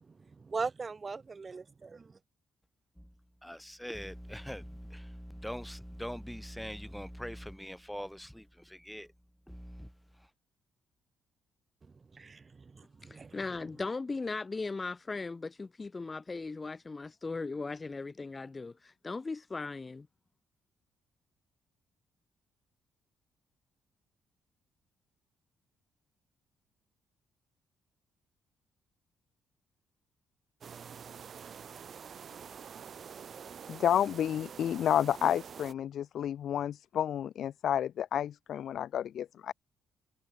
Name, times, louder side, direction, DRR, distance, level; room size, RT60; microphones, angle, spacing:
voice 1, 0.4-1.6 12.1-13.4, right 4 dB, 30° right, 4.3 m, -39 dB
voice 2, 3.4-9.1 9.5-10.3, equal, ahead, 3.5 m, -43 dB
voice 3, 13.0-20.1, left 3 dB, 25° left, 1.3 m, -38 dB
sound 1, 30.6-35.7, right 7 dB, 50° right, 2.5 m, -47 dB
voice 4, 33.7-39.5, left 10 dB, 65° left, 1.1 m, -30 dB
cardioid pair, 90°, 0 cm